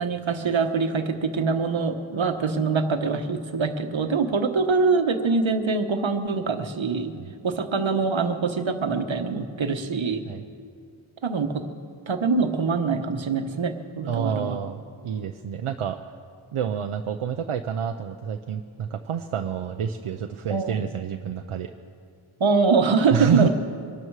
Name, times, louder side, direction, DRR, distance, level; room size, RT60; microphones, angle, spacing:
voice 1, 0.0-7.1 7.4-10.2 11.2-11.6 12.1-14.6 20.5-20.7 22.4-23.5, right 4 dB, 65° right, 7 dB, 1.2 m, -24 dB
voice 2, 14.1-16.0 16.5-21.7 23.1-23.5, right 7 dB, 85° right, 5 dB, 0.7 m, -28 dB
23.0 x 12.5 x 4.8 m, 2.2 s
wide cardioid pair, 85°, 49 cm